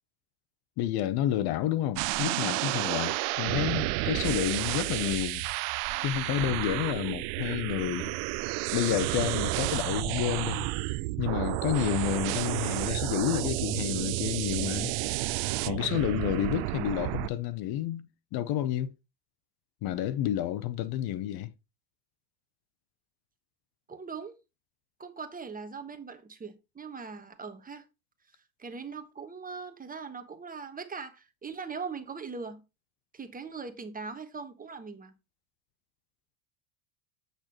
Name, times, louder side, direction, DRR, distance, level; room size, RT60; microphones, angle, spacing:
voice 1, 0.8-5.5 6.0-8.1 8.7-10.7 11.2-14.9 15.6-18.9 19.8-21.5, left 12 dB, 50° left, 0.8 m, -30 dB
sound 1, 2.0-17.3, right 21 dB, 55° right, 0.5 m, -31 dB
voice 2, 23.9-24.3 25.0-27.9 28.6-32.6 33.1-35.1, right 5 dB, 15° right, 1.2 m, -40 dB
8.1 x 6.6 x 3.0 m
hypercardioid pair, 100°, 48 cm